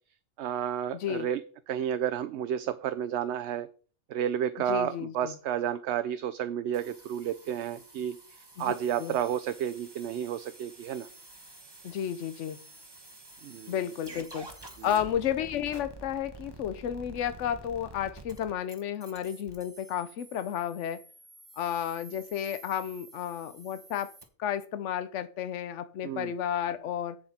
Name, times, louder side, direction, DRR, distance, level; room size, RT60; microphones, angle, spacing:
voice 1, 0.4-1.4 1.7-3.7 4.1-8.2 8.6-11.1 13.4-13.7 14.8-14.9 26.0-26.3, right 9 dB, 70° right, 0.8 m, -31 dB
voice 2, 0.9-1.3 4.7-5.4 8.6-8.7 9.0-9.2 11.8-12.6 13.7-21.0 21.6-24.1 24.4-27.2, left 9 dB, 75° left, 1.0 m, -32 dB
sound 1, 6.7-24.2, right 2 dB, 20° right, 1.1 m, -50 dB
8.0 x 7.3 x 4.2 m
omnidirectional pair, 1.3 m